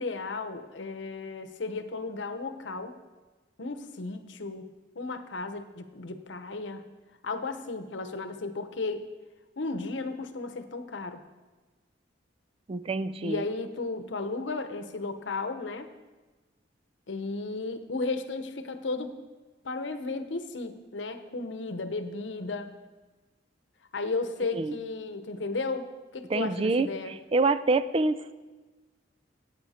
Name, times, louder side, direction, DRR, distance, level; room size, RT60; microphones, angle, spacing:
voice 1, 0.0-2.9 3.6-4.7 4.9-6.8 7.2-9.1 9.6-11.2 13.2-15.9 17.1-19.1 19.6-22.8 23.9-27.2, left 3 dB, 85° left, 9 dB, 0.9 m, -34 dB
voice 2, 12.7-13.4 24.5-24.8 26.3-28.3, right 3 dB, 30° right, 12 dB, 0.4 m, -27 dB
13.0 x 8.8 x 4.2 m, 1.2 s
head